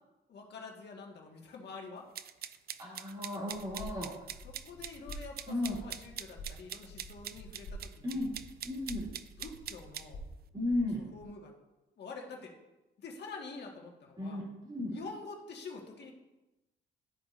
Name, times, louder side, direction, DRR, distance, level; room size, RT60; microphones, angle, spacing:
voice 1, 0.3-2.1 4.4-8.3 9.4-10.2 11.1-11.5 12.0-12.5 13.0-14.4 14.9-16.1, left 4 dB, 60° left, 0 dB, 1.5 m, -47 dB
sound 1, 2.1-10.1, right 10 dB, 50° right, 0.4 m, -43 dB
voice 2, 2.8-4.1 5.5-5.8 8.0-8.3 8.6-9.1 10.5-11.0 14.2-14.9, left 2 dB, 20° right, -5 dB, 2.4 m, -34 dB
sound 2, 3.5-11.3, equal, 80° left, 0.9 m, -49 dB
12.5 x 4.8 x 2.5 m, 1.0 s
cardioid pair, 90°, 20 cm